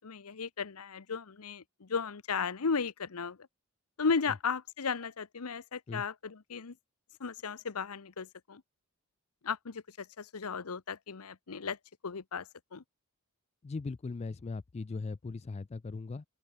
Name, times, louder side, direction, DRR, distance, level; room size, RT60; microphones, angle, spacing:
voice 1, 0.0-3.4 4.0-6.7 7.2-8.6 9.4-11.8 12.0-12.8, left 5 dB, 80° left, 0.9 m, -35 dB
voice 2, 13.6-16.2, left 3 dB, 30° left, 0.3 m, -39 dB
open air
head